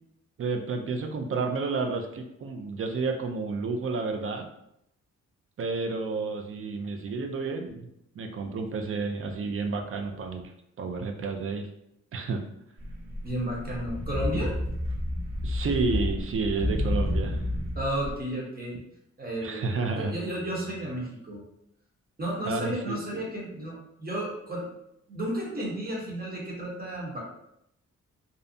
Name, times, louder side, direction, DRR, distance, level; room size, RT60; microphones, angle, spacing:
voice 1, 0.4-4.5 5.6-7.9 8.2-10.5 10.8-11.7 12.1-12.4 15.4-17.4 19.4-20.1 22.5-23.2, right 4 dB, 45° right, 5 dB, 0.4 m, -30 dB
sound 1, 12.8-18.2, left 1 dB, 90° right, 0.8 m, -30 dB
voice 2, 13.2-14.5 17.8-18.8 19.2-21.4 22.2-24.7 25.1-27.2, right 1 dB, 30° right, -3 dB, 1.0 m, -33 dB
2.6 x 2.0 x 2.6 m, 0.78 s
cardioid pair, 75°, 31 cm